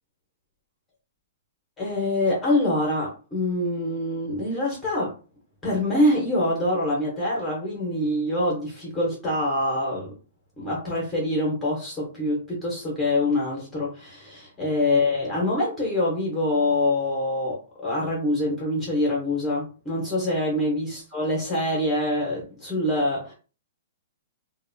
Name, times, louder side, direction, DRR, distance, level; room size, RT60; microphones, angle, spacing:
voice 1, 1.8-5.1 5.6-10.1 10.6-23.3, left 1 dB, 10° left, -4 dB, 0.9 m, -25 dB
2.7 x 2.1 x 2.6 m, 0.36 s
hypercardioid pair, 150°, 0 cm